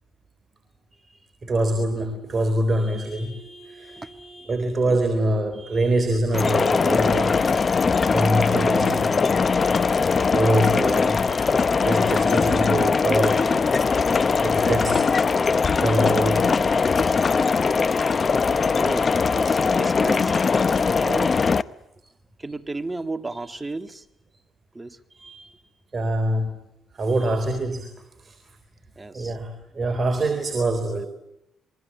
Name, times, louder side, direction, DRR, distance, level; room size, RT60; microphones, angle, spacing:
voice 1, 1.4-7.4 8.1-9.4 10.3-11.5 11.8-13.6 14.4-15.0 15.8-16.5 17.2-17.3 20.2-20.8 23.5-23.6 25.1-25.5 25.9-26.5 27.0-27.9 28.2-28.4 29.1-31.1, right 1 dB, 35° right, 6 dB, 4.0 m, -25 dB
sound 1, 6.3-21.6, left 5 dB, 35° left, 0.9 m, -21 dB
voice 2, 18.7-20.3 21.0-21.7 22.4-24.0 24.7-25.0 29.0-29.4, right 2 dB, 15° right, 9 dB, 2.0 m, -33 dB
27.5 x 23.0 x 8.4 m, 0.84 s
cardioid pair, 90°, 0 cm